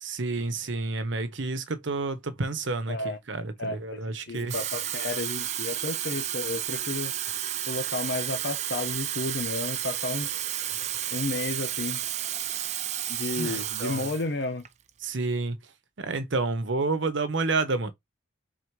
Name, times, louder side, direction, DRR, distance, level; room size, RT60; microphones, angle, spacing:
voice 1, 0.0-4.5 13.4-14.1 15.0-15.6 16.0-17.9, right 3 dB, 70° right, 0.9 m, -29 dB
voice 2, 2.9-3.2 3.6-4.0 4.3-7.1 7.7-10.3 11.1-12.0 13.1-14.6, left 3 dB, 60° left, 0.8 m, -32 dB
Water tap faucet / Fill (with liquid), 4.3-14.3 14.6-14.9, right 11 dB, 35° right, 0.4 m, -32 dB
4.1 x 2.7 x 4.6 m
head